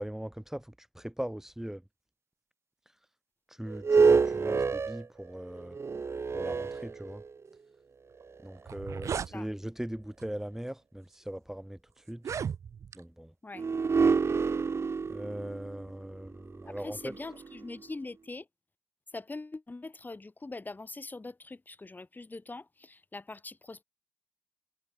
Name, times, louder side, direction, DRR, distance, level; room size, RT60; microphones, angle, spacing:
voice 1, 0.0-1.8 3.5-5.8 6.3-7.2 8.4-12.2 12.9-13.3 15.1-17.0, right 1 dB, 10° right, 1.2 m, -40 dB
sound 1, 3.7-7.5 8.2-8.3 13.5-17.8, right 5 dB, 60° right, 0.9 m, -28 dB
sound 2, 8.2-8.3 8.6-9.3 10.2-10.4 11.1-11.2 12.1-13.0, right 7 dB, 85° right, 0.7 m, -36 dB
voice 2, 9.1-9.5 13.4-13.7 16.7-18.5 19.1-23.8, left 3 dB, 35° left, 2.3 m, -43 dB
cardioid pair, 45°, 5 cm